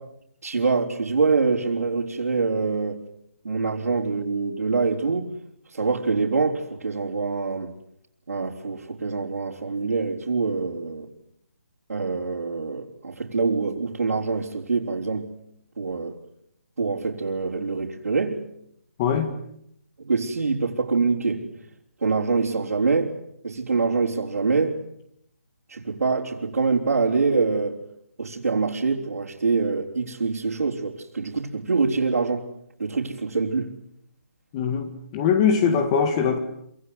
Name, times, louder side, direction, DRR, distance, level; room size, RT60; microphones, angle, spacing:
voice 1, 0.4-3.0 3.4-5.3 5.7-7.7 8.3-11.1 11.9-15.3 15.8-16.2 16.8-18.4 20.0-21.6 22.0-23.1 23.4-24.8 25.7-27.8 28.2-32.5 32.8-33.7, right 4 dB, 75° right, 4.1 m, -25 dB
voice 2, 19.0-19.3 34.5-36.4, left 6 dB, 20° left, 2.0 m, -22 dB
27.0 x 25.0 x 8.2 m
hypercardioid pair, 165°, 8 cm